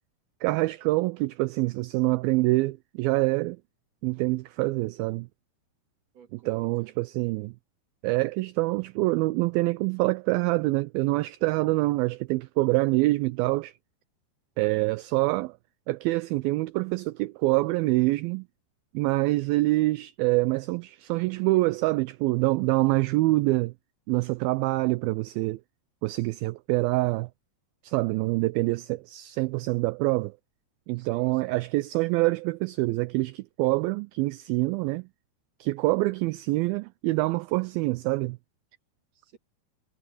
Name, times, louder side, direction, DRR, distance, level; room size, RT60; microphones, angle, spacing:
voice 1, 0.4-3.6 4.0-5.3 6.5-7.5 8.0-13.7 14.6-15.6 15.9-18.5 18.9-23.7 24.1-25.6 26.0-27.3 27.8-30.4 30.9-35.1 35.6-38.4, right 21 dB, 85° right, 2.1 m, -25 dB
voice 2, 6.1-7.0 31.0-31.6 39.1-39.4, right 7 dB, 50° right, 2.6 m, -55 dB
omnidirectional pair, 4.7 m